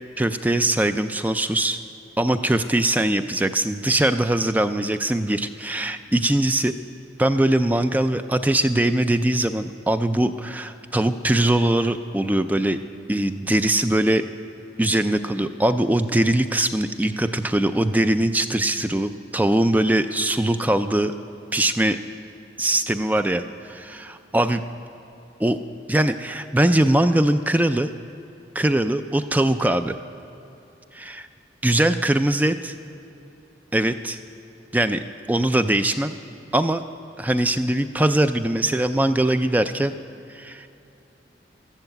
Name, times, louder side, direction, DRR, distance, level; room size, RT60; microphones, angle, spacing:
voice 1, 0.2-1.8 2.2-6.7 7.2-12.8 13.1-14.2 14.8-21.1 21.5-22.0 22.6-24.6 25.4-25.6 25.9-27.9 28.6-30.0 30.9-31.3 31.6-32.7 33.7-34.2 34.7-36.2 36.5-36.8 37.2-39.9 40.3-40.7, right 1 dB, 10° right, 10 dB, 0.3 m, -21 dB
13.0 x 12.0 x 7.9 m, 2.9 s
head